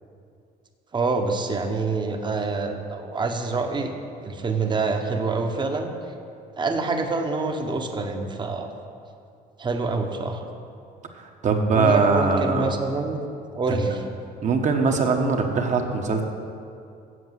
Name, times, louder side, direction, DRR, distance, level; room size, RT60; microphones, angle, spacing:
voice 1, 0.9-3.9 4.2-6.0 6.6-8.7 9.6-10.4 11.7-13.2 13.5-14.0, right 3 dB, 25° right, 5 dB, 1.0 m, -26 dB
voice 2, 11.2-12.8 13.7-13.9 14.4-16.2, right 4 dB, 45° right, 3 dB, 1.2 m, -22 dB
7.8 x 7.1 x 7.8 m, 2.5 s
cardioid pair, 110°, 17 cm